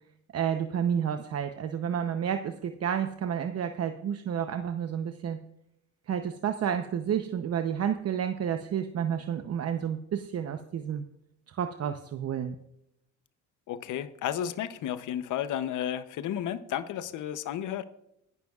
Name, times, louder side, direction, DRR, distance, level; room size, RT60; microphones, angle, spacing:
voice 1, 0.3-5.4 6.1-11.1 11.5-12.6, right 8 dB, 55° right, 7 dB, 0.8 m, -30 dB
voice 2, 13.7-17.8, left 10 dB, 80° left, 13 dB, 0.8 m, -32 dB
20.0 x 11.0 x 2.4 m, 0.79 s
cardioid pair, 90°, 30 cm